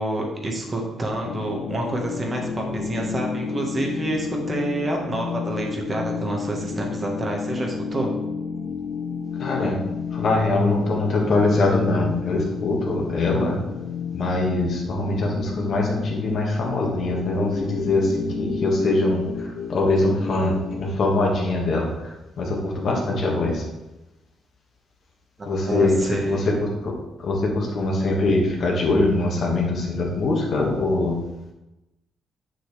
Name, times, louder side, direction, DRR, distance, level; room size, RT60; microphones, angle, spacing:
voice 1, 0.0-8.1 25.6-26.5, right 1 dB, 30° right, 0 dB, 1.5 m, -28 dB
sound 1, 1.2-21.0, left 5 dB, 80° left, 0.7 m, -31 dB
voice 2, 9.3-9.8 10.1-13.6 14.1-23.7 25.5-31.2, left 2 dB, 55° left, -1 dB, 1.9 m, -23 dB
7.0 x 6.5 x 3.4 m, 0.98 s
cardioid pair, 90°, 0 cm